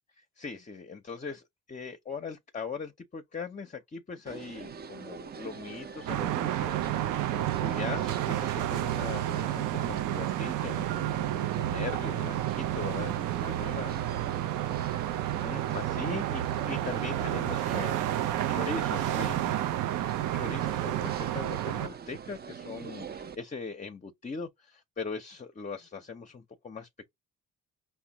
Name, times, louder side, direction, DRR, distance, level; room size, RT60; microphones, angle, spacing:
voice 1, 0.4-1.4 1.7-14.0 15.3-18.1 18.5-19.5 20.3-27.1, left 5 dB, 25° left, 0.6 m, -40 dB
sound 1, 4.3-23.4, right 7 dB, 35° right, 0.5 m, -43 dB
sound 2, 6.1-21.9, right 13 dB, 85° right, 0.5 m, -30 dB
Mallet percussion, 10.9-14.9, right 8 dB, 65° right, 0.9 m, -47 dB
4.9 x 2.1 x 2.8 m
cardioid pair, 90°, 30 cm